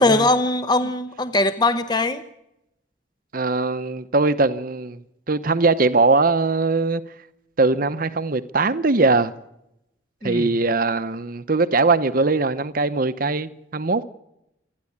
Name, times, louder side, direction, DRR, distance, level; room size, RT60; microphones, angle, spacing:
voice 1, 0.0-2.2 10.2-10.5, left 2 dB, 20° left, 0.8 m, -20 dB
voice 2, 3.3-5.0 5.3-7.0 7.6-9.3 10.2-14.1, right 3 dB, 45° right, 0.9 m, -21 dB
28.0 x 10.5 x 8.6 m
head